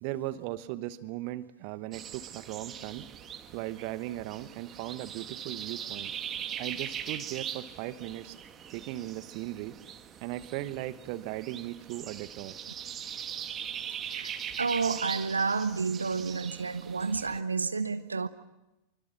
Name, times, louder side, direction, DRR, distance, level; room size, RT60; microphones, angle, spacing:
voice 1, 0.0-3.1 3.5-6.1 6.6-8.4 8.7-9.8 10.2-12.6, right 15 dB, 45° right, 15 dB, 1.1 m, -37 dB
sound 1, 1.9-17.4, right 9 dB, 25° right, 1.7 m, -41 dB
voice 2, 14.0-18.3, right 4 dB, 75° right, 12 dB, 0.8 m, -30 dB
26.0 x 24.5 x 7.2 m, 0.96 s
figure-of-eight pair, 90°, 0 cm